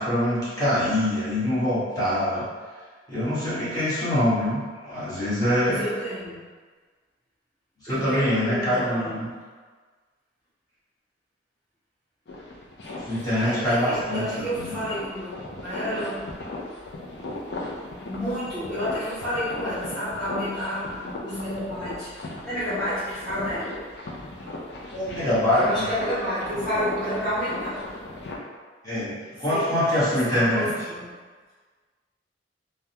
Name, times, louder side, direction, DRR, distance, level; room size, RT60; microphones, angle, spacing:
voice 1, 0.0-2.4 3.1-5.8 7.8-9.3 13.1-14.7 24.9-25.9 28.8-30.7, left 1 dB, 20° left, -12 dB, 1.2 m, -24 dB
voice 2, 5.6-6.4 7.9-9.2 13.3-15.3 15.6-16.3 18.0-20.9 21.2-22.1 22.4-23.7 25.6-27.8 29.5-31.1, equal, ahead, -15 dB, 0.8 m, -30 dB
sound 1, 12.3-28.4, left 2 dB, 65° left, 0.5 m, -37 dB
3.4 x 2.2 x 2.8 m, 1.5 s
head